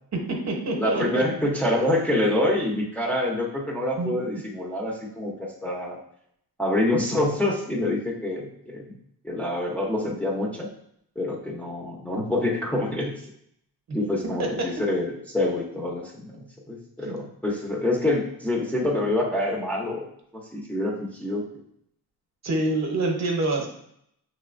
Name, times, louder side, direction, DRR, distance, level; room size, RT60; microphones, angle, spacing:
voice 1, 0.1-1.2 4.0-4.4 14.4-14.5 17.0-17.1 22.4-23.7, right 2 dB, 45° right, 1 dB, 1.0 m, -26 dB
voice 2, 0.7-6.0 6.6-9.0 9.2-10.7 11.2-13.2 13.9-20.1 20.5-21.4, left 1 dB, 5° left, -4 dB, 0.8 m, -26 dB
6.1 x 3.3 x 2.5 m, 0.71 s
cardioid pair, 135°, 39 cm